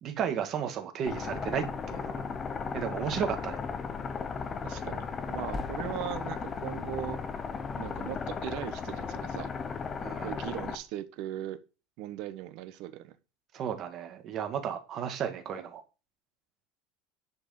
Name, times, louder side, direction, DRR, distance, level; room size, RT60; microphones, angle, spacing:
voice 1, 0.0-2.2 2.7-3.6 10.0-10.3 13.5-15.8, right 8 dB, 35° right, 2.0 m, -33 dB
sound 1, 1.0-10.8, left 5 dB, 20° left, 1.0 m, -35 dB
voice 2, 4.6-7.2 7.8-9.5 10.2-11.6 12.0-13.1, right 13 dB, 50° right, 1.4 m, -39 dB
10.5 x 5.3 x 6.6 m
cardioid pair, 170°, 0 cm